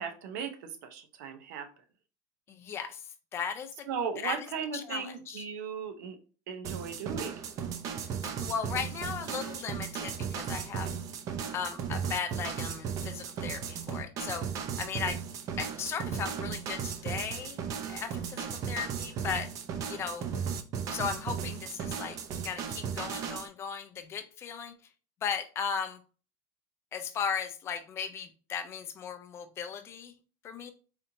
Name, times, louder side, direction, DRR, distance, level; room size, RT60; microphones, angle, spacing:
voice 1, 0.0-1.7 3.9-6.2 6.5-7.4, right 6 dB, 85° right, 0.7 m, -37 dB
voice 2, 2.5-3.0 3.3-3.9 4.2-5.5 8.2-10.9 11.5-14.5 14.8-15.2 15.6-17.6 17.9-19.5 19.9-20.3 20.9-22.2 22.4-24.7 25.2-26.0 26.9-30.1 30.4-30.7, left 7 dB, 25° left, 0.4 m, -36 dB
sound 1, 6.6-23.5, right 7 dB, 35° right, 0.4 m, -36 dB
4.2 x 2.7 x 2.6 m
cardioid pair, 160°, 10 cm